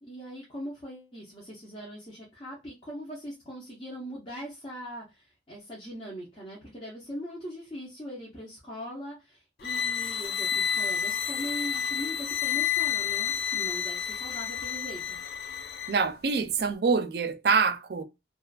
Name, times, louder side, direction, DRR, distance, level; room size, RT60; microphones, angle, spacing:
voice 1, 0.0-15.2, equal, 30° left, 0.7 m, -41 dB
sound 1, 9.6-16.0, left 8 dB, 60° left, 0.3 m, -30 dB
voice 2, 15.9-18.0, right 5 dB, 65° right, 0.4 m, -25 dB
2.4 x 2.4 x 2.3 m
head